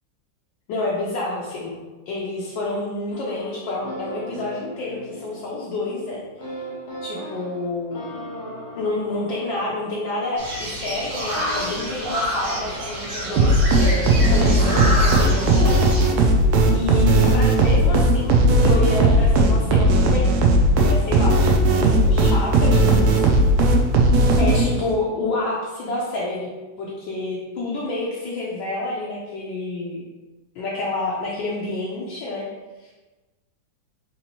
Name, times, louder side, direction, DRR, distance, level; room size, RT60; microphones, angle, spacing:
voice 1, 0.7-1.8 2.1-6.2 7.0-8.1 8.8-15.8 16.1-16.2 16.7-20.2 20.8-23.4 24.1-26.5 26.8-30.0 30.5-32.4 32.8-32.9, left 2 dB, 70° left, -5 dB, 1.3 m, -28 dB
sound 1, 3.1-12.1, equal, 90° left, 1.7 m, -38 dB
sound 2, 10.4-16.1, equal, 50° right, 1.4 m, -28 dB
sound 3, 13.4-25.0, right 1 dB, 80° right, 0.8 m, -17 dB
4.1 x 3.0 x 2.9 m, 1.2 s
omnidirectional pair, 2.2 m